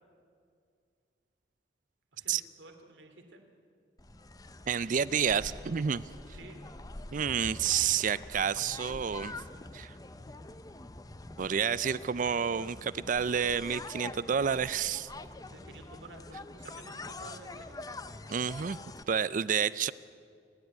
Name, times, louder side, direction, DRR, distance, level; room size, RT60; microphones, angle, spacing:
voice 1, 2.1-3.4 6.3-6.6 15.5-17.7, right 2 dB, 90° right, 5 dB, 2.7 m, -52 dB
sound 1, 4.0-19.0, left 2 dB, 20° left, 0.7 m, -45 dB
voice 2, 4.7-6.0 7.1-9.3 9.7-10.0 11.4-15.1 18.3-18.8 19.1-19.9, right 7 dB, 45° right, 17 dB, 0.4 m, -29 dB
29.0 x 10.5 x 9.6 m, 2.3 s
head